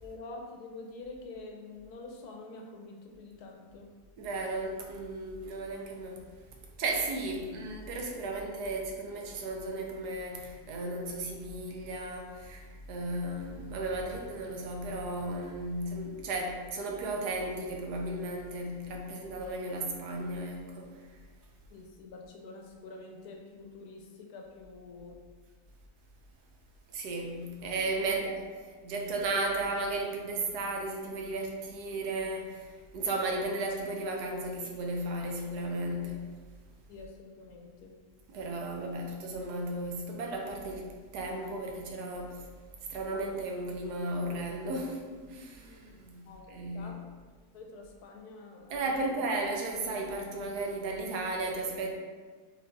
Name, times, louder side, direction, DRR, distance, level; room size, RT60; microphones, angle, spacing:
voice 1, 0.0-3.9 21.7-25.2 28.0-28.2 36.9-37.9 46.3-47.0 47.5-49.1, left 3 dB, 75° left, 1.1 m, -47 dB
voice 2, 4.2-6.2 6.8-21.0 26.9-28.4 28.8-36.3 38.3-42.4 42.9-45.0 45.3-47.0 48.7-51.9, right 2 dB, 80° right, 1.2 m, -35 dB
4.5 x 3.6 x 2.6 m
omnidirectional pair, 1.7 m